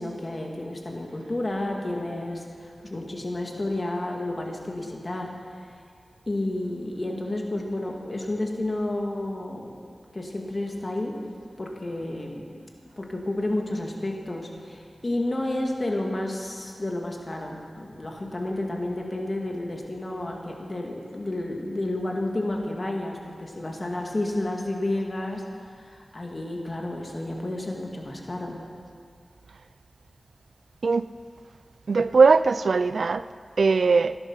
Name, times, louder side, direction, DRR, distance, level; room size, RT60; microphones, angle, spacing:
voice 1, 0.0-5.5 6.3-9.8 10.1-11.2 11.6-12.6 13.0-25.4 25.8-28.7, left 1 dB, 45° left, 1 dB, 2.1 m, -31 dB
voice 2, 31.9-33.3 33.6-34.2, right 4 dB, 85° right, 14 dB, 0.4 m, -20 dB
15.5 x 12.5 x 5.8 m, 2.1 s
cardioid pair, 50°, 0 cm